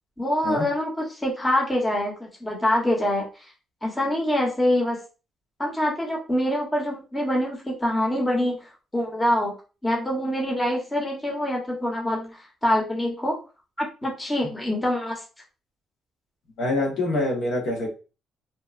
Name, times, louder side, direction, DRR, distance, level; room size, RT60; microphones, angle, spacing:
voice 1, 0.2-3.3 3.8-5.0 5.6-8.7 8.9-9.5 9.8-13.4 13.8-15.2, left 1 dB, 15° left, -1 dB, 1.0 m, -25 dB
voice 2, 16.6-17.9, left 2 dB, 75° left, 0 dB, 1.2 m, -25 dB
2.9 x 2.2 x 2.5 m, 0.33 s
cardioid pair, 90°, 0 cm